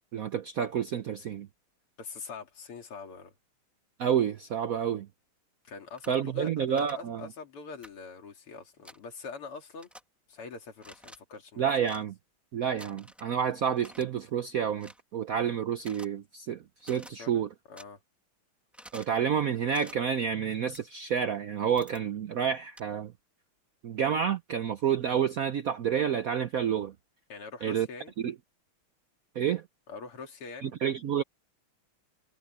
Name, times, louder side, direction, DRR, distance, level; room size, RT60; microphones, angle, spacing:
voice 1, 0.1-1.5 4.0-5.1 6.1-7.3 11.6-12.1 12.5-17.5 18.9-23.1 23.8-26.9 27.6-27.9 28.2-28.3 29.3-29.6 30.6-31.2, right 8 dB, 80° right, 0.7 m, -29 dB
voice 2, 2.0-3.3 5.6-9.9 10.3-11.7 17.2-18.0 27.3-28.1 29.9-30.7, left 4 dB, 80° left, 3.5 m, -44 dB
sound 1, 6.0-6.1 6.8-6.9 7.8-7.9 8.8-9.0 9.8-10.0 10.8-11.2 11.8-12.0 12.8-13.3 13.8-14.1 14.8-15.0 15.8-16.1 16.8-17.1 17.8-17.9 18.7-19.1 19.7-19.9 20.7-20.8 21.8-22.0 22.8-22.9, equal, ahead, 1.3 m, -49 dB
omnidirectional pair, 2.4 m